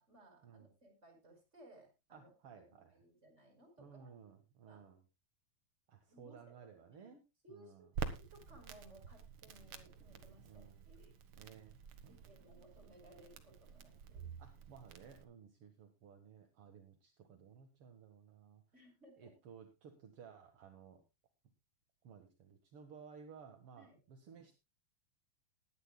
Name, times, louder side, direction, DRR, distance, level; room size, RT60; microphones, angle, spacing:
voice 1, 0.0-2.3 2.7-4.1 4.6-4.8 6.1-7.2 7.4-7.9 8.2-11.1 12.1-14.2 18.7-19.3 23.8-24.0, right 1 dB, 15° right, 2 dB, 5.3 m, -62 dB
voice 2, 2.1-2.9 3.8-5.0 5.9-7.2 7.5-7.9 10.4-10.8 11.4-12.3 14.4-18.6 19.2-21.0 22.0-24.5, right 7 dB, 50° right, 5 dB, 1.8 m, -57 dB
Crackle, 7.9-15.2, right 6 dB, 70° right, 1.2 m, -48 dB
20.0 x 11.0 x 2.3 m, 0.25 s
omnidirectional pair, 4.4 m